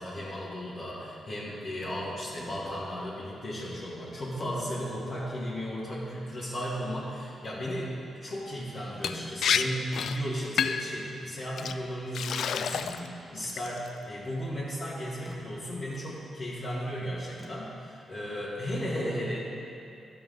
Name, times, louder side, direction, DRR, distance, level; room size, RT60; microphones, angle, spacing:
voice 1, 0.0-7.9 8.2-19.4, equal, 55° left, -10 dB, 2.2 m, -35 dB
sound 1, 2.4-2.6 3.5-3.7 4.4-4.9 5.6-5.7 9.0-9.4 11.6-11.9 12.3-12.4 12.6-13.7 15.3-15.4 17.4-17.8, equal, ahead, 1.4 m, -45 dB
Liquid, 9.0-9.2 9.4-9.6 9.9-10.2 10.6-10.9 11.6-11.7 12.1-13.1 13.4-13.9, left 7 dB, 75° left, 0.3 m, -28 dB
11.5 x 5.7 x 5.5 m, 2.7 s
cardioid pair, 60°, 0 cm